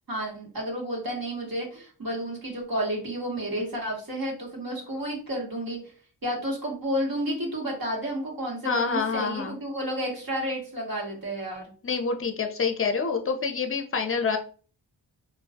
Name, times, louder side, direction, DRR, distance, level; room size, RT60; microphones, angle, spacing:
voice 1, 0.1-5.8 6.2-11.7, equal, 55° right, -2 dB, 1.1 m, -31 dB
voice 2, 8.6-9.6 11.8-14.4, left 5 dB, 30° left, 6 dB, 0.5 m, -27 dB
2.3 x 2.1 x 2.6 m, 0.41 s
cardioid pair, 50°, 43 cm